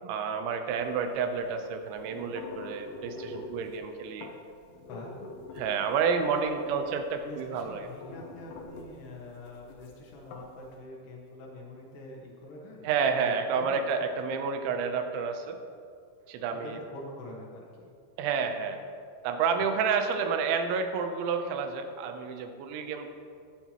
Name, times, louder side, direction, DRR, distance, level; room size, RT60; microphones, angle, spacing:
voice 1, 0.0-4.3 5.6-7.9 12.8-15.6 16.3-16.8 18.2-18.8 19.2-23.1, right 6 dB, 85° right, 6 dB, 3.1 m, -30 dB
sound 1, 0.8-10.7, left 3 dB, 85° left, 1.9 m, -46 dB
voice 2, 7.2-13.9 16.5-17.9, left 2 dB, 70° left, -3 dB, 3.5 m, -45 dB
14.0 x 10.5 x 3.0 m, 2.4 s
omnidirectional pair, 5.3 m